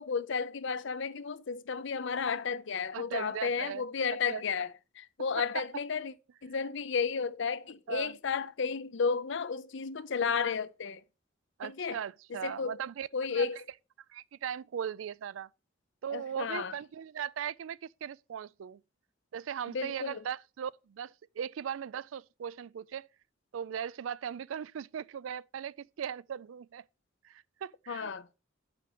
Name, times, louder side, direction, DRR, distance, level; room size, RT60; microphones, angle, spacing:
voice 1, 0.0-6.1 6.4-11.0 11.6-12.0 12.3-12.8 13.1-13.6 16.1-16.7 19.7-20.2 27.9-28.3, left 5 dB, 65° left, 0.6 m, -33 dB
voice 2, 2.9-3.8 4.3-4.4 7.9-8.2 11.6-13.1 13.3-13.5 14.1-15.5 16.0-18.8 19.3-23.1 23.5-26.8 27.2-28.1, right 8 dB, 85° right, 0.4 m, -38 dB
6.0 x 5.8 x 6.9 m
head